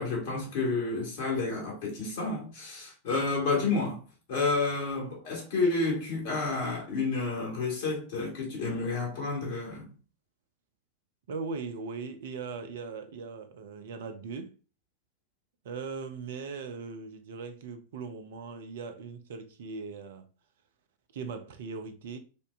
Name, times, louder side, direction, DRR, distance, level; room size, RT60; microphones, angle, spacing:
voice 1, 0.0-4.0 4.3-9.9, left 3 dB, 50° left, 1.8 m, -30 dB
voice 2, 11.3-14.5 15.6-20.3 21.1-22.2, right 4 dB, 55° right, 0.6 m, -39 dB
5.2 x 2.7 x 2.5 m
figure-of-eight pair, 90°, 0 cm